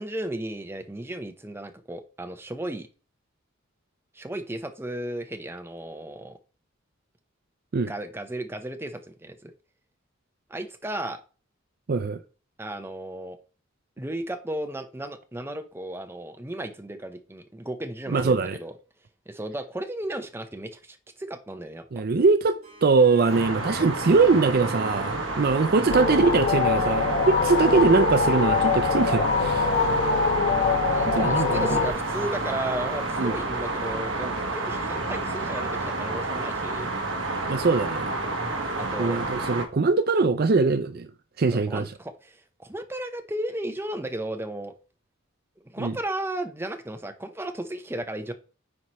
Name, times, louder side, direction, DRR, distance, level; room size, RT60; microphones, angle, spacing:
voice 1, 0.0-2.9 4.1-6.4 7.9-9.5 10.5-11.2 12.6-13.4 14.0-18.7 19.3-22.0 30.9-36.9 38.8-39.2 41.5-44.7 45.6-48.3, right 1 dB, 10° right, 0.8 m, -34 dB
voice 2, 11.9-12.2 18.1-18.6 21.9-29.7 31.1-31.8 33.2-33.4 37.5-38.1 39.0-41.1 41.4-41.9 45.8-45.9, right 4 dB, 50° right, 0.5 m, -22 dB
Harp, 22.4-27.6, right 2 dB, 35° right, 3.7 m, -45 dB
sound 1, 23.3-39.6, right 2 dB, 65° right, 1.4 m, -30 dB
sound 2, 25.9-31.9, left 4 dB, 50° left, 0.8 m, -24 dB
9.7 x 4.7 x 3.0 m
head